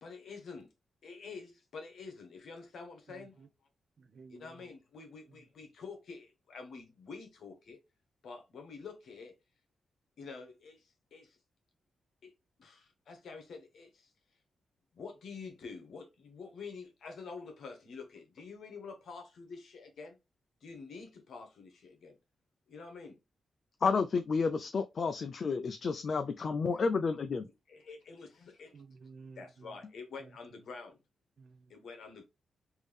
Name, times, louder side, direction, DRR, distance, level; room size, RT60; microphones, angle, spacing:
voice 1, 0.0-0.7 1.0-3.5 4.3-7.8 8.2-9.4 10.2-11.4 12.2-12.3 12.6-14.1 14.9-20.2 20.6-22.2 22.7-23.2 27.7-28.8 29.4-31.0 31.7-32.3, left 4 dB, 80° left, 1.0 m, -48 dB
voice 2, 3.1-3.5 4.0-4.7 28.7-29.8 30.2-30.3 31.4-31.7, right 4 dB, 55° right, 0.5 m, -54 dB
voice 3, 23.8-27.4, left 5 dB, 55° left, 0.3 m, -31 dB
3.5 x 2.7 x 3.3 m
cardioid pair, 100°, 0 cm